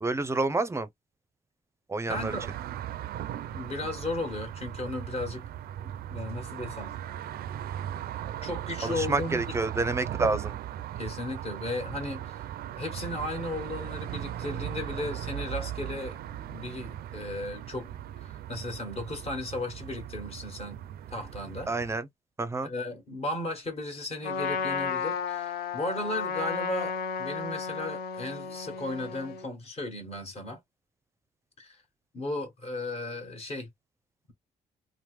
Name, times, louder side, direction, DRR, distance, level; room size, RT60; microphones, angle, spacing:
voice 1, 0.0-0.9 1.9-2.4 8.8-10.6 21.7-22.1 22.4-22.7, right 3 dB, 15° right, 0.5 m, -28 dB
voice 2, 2.1-2.5 3.5-5.5 5.8-7.0 8.4-9.6 11.0-12.4 12.8-16.2 16.5-17.9 18.2-20.8 21.1-21.7 22.6-30.6 31.6-31.8 32.1-33.7, left 2 dB, 40° left, 1.5 m, -35 dB
sound 1, 2.1-22.0, right 11 dB, 75° right, 0.4 m, -38 dB
Trumpet, 24.2-29.5, left 6 dB, 80° left, 0.7 m, -33 dB
3.1 x 2.1 x 3.1 m
cardioid pair, 100°, 16 cm